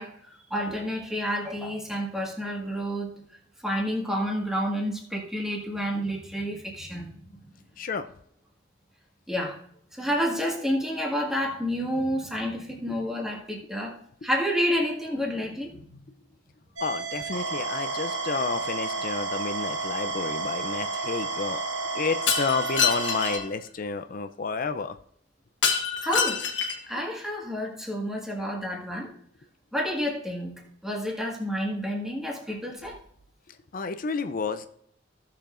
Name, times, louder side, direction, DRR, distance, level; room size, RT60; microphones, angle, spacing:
voice 1, 0.0-3.1 3.6-7.4 9.3-9.6 9.9-14.0 14.2-16.0 26.0-26.4 26.9-29.1 29.7-33.0, equal, 5° right, -2 dB, 1.8 m, -29 dB
voice 2, 16.8-21.6 21.9-25.0 33.7-34.7, left 4 dB, 50° left, 9 dB, 0.5 m, -30 dB
sound 1, 16.8-23.4, right 3 dB, 90° right, 2.1 m, -31 dB
Shatter, 22.3-23.4 25.6-26.9, left 6 dB, 75° left, 1.4 m, -26 dB
16.0 x 6.8 x 2.6 m, 0.66 s
head